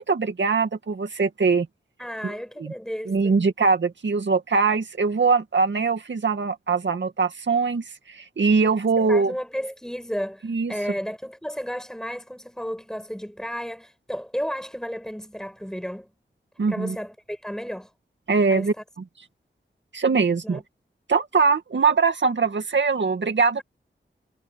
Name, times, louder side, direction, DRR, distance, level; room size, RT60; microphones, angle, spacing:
voice 1, 0.0-1.7 2.2-2.3 2.6-2.7 3.1-9.3 10.4-10.7 16.6-17.0 18.3-18.7 19.9-20.6 21.1-23.6, right 4 dB, 70° right, 2.2 m, -22 dB
voice 2, 2.0-3.4 9.0-16.1 16.7-17.9 18.5-18.7 20.4-20.6, equal, 5° left, 7.7 m, -33 dB
wide cardioid pair, 85°, 19 cm